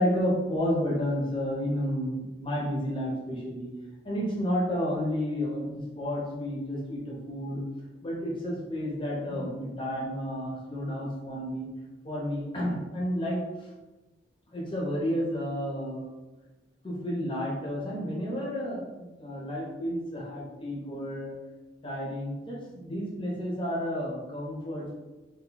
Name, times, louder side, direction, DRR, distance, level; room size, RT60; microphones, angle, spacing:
voice 1, 0.0-3.7 4.0-7.6 8.0-11.7 12.0-13.4 14.5-16.1 16.8-21.4 21.8-24.9, equal, 30° left, -4 dB, 0.8 m, -31 dB
3.4 x 2.6 x 3.9 m, 1.1 s
head